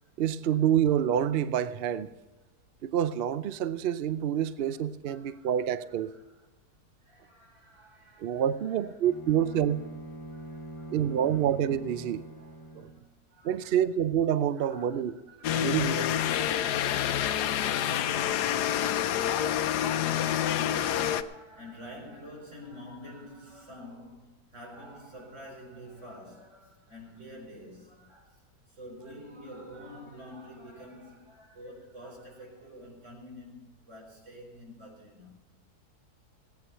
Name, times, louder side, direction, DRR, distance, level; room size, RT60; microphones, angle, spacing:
voice 1, 0.2-2.1 2.8-6.1 8.2-9.8 10.9-12.2 12.7-12.9 13.4-15.2 15.6-16.0, right 9 dB, 75° right, 0.5 m, -27 dB
voice 2, 4.6-6.5 7.0-8.8 9.5-9.6 10.3-11.4 12.6-13.0 13.3-13.8 14.5-18.7 19.4-35.4, equal, 45° right, 4.7 m, -49 dB
Bowed string instrument, 9.0-13.1, right 1 dB, 20° left, 0.5 m, -43 dB
sound 1, 15.4-21.2, left 10 dB, 85° left, 1.2 m, -27 dB
17.5 x 9.3 x 5.6 m
omnidirectional pair, 1.7 m